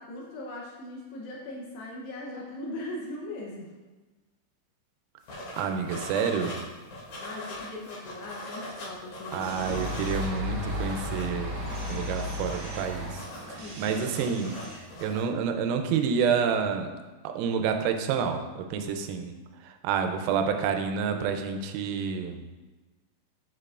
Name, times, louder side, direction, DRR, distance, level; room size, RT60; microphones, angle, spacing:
voice 1, 0.0-3.8 7.2-9.6 13.6-14.2, left 1 dB, 80° left, -3 dB, 2.5 m, -40 dB
sound 1, 5.3-6.6 6.9-10.3 10.5-15.2, left 1 dB, 50° left, 3.5 m, -41 dB
voice 2, 5.6-6.6 9.3-11.6 11.9-14.6 15.0-16.9 17.2-19.3 19.6-22.5, right 6 dB, 90° right, 6 dB, 3.3 m, -29 dB
sound 2, 9.4-14.8, left 1 dB, 60° right, 2.7 m, -35 dB
8.3 x 6.7 x 2.4 m, 1.2 s
omnidirectional pair, 5.8 m